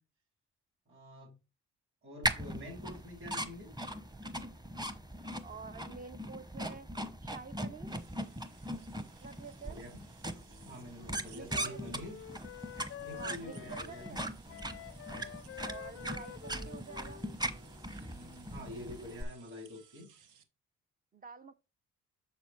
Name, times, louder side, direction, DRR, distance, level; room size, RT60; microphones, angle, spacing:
voice 1, 0.9-1.3 2.0-3.7 9.4-10.0 10.6-12.2 13.0-14.2 14.5-14.7 15.1-15.4 16.5-16.6 18.0-20.1, left 1 dB, 45° right, 4.3 m, -47 dB
sound 1, 2.2-19.2, right 1 dB, 15° right, 1.0 m, -40 dB
voice 2, 5.4-6.9 7.2-8.0 9.2-9.8 11.3-11.8 13.1-14.2 15.6-17.3 21.1-21.5, right 5 dB, 30° right, 0.5 m, -48 dB
sound 2, 7.9-20.4, right 8 dB, 85° right, 1.2 m, -62 dB
Wind instrument woodwind instrument, 10.5-18.5, left 12 dB, 45° left, 0.4 m, -49 dB
7.0 x 6.9 x 3.1 m
cardioid pair, 90°, 30 cm